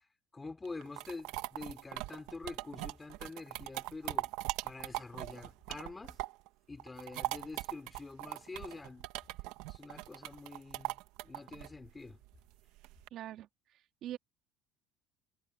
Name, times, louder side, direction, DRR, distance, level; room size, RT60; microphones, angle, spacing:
voice 1, 0.3-4.3 4.6-6.2 6.7-9.1 9.7-12.2, left 3 dB, 15° left, 5.0 m, -46 dB
sound 1, 0.7-6.5 6.8-13.1, right 19 dB, 80° right, 1.4 m, -40 dB
voice 2, 13.1-14.2, right 12 dB, 60° right, 2.7 m, -44 dB
supercardioid pair, 110°, 0 cm